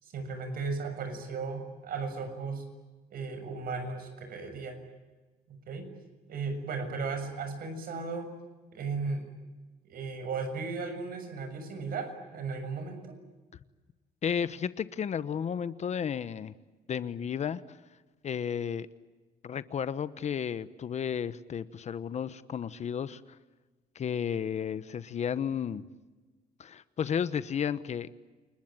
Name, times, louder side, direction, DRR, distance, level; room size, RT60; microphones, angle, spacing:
voice 1, 0.0-2.7 3.1-4.8 5.5-5.9 6.3-8.3 8.7-9.2 9.8-13.2, right 4 dB, 60° right, 8 dB, 6.9 m, -36 dB
voice 2, 14.2-16.5 16.9-17.6 18.2-18.9 19.4-23.2 23.9-25.8 26.6-28.1, left 8 dB, 40° left, 14 dB, 1.0 m, -33 dB
29.0 x 20.5 x 9.0 m, 1.3 s
cardioid pair, 110°, 17 cm